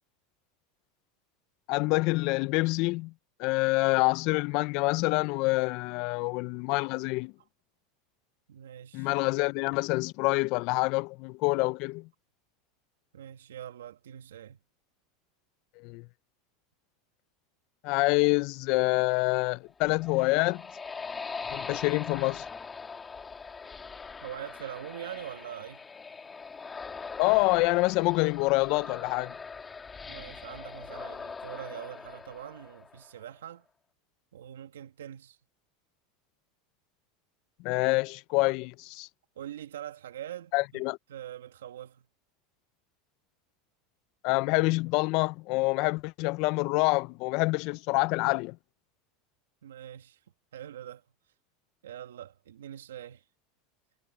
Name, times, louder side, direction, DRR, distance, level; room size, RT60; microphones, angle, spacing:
voice 1, 1.7-3.1 3.4-7.3 8.9-12.1 15.8-16.1 17.8-20.6 21.5-22.5 27.2-29.4 37.6-39.1 40.5-41.0 44.2-48.6, left 25 dB, 60° left, 0.6 m, -26 dB
voice 2, 8.5-9.1 13.1-14.6 24.2-25.9 30.1-33.6 34.3-35.4 39.4-40.8 41.1-42.0 49.6-50.2 50.5-51.0 51.8-53.2, right 11 dB, 90° right, 2.4 m, -43 dB
sound 1, 19.6-33.2, left 5 dB, 20° left, 3.5 m, -42 dB
hypercardioid pair, 100°, 0 cm